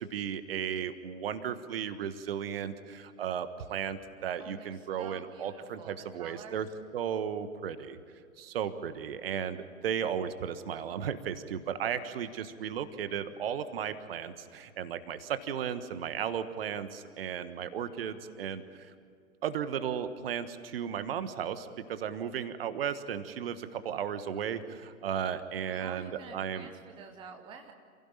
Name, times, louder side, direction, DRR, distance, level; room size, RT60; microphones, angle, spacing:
voice 1, 0.1-2.7 3.2-6.7 6.9-7.9 8.5-9.6 9.8-14.3 14.8-16.9 17.2-18.6 19.4-20.5 20.7-21.6 21.9-23.6 23.8-24.6 25.0-26.7, right 8 dB, 40° right, 12 dB, 1.4 m, -34 dB
voice 2, 4.4-6.6 25.6-27.7, right 6 dB, 10° right, 5 dB, 1.0 m, -49 dB
28.0 x 16.5 x 9.0 m, 2.2 s
figure-of-eight pair, 120°, 42 cm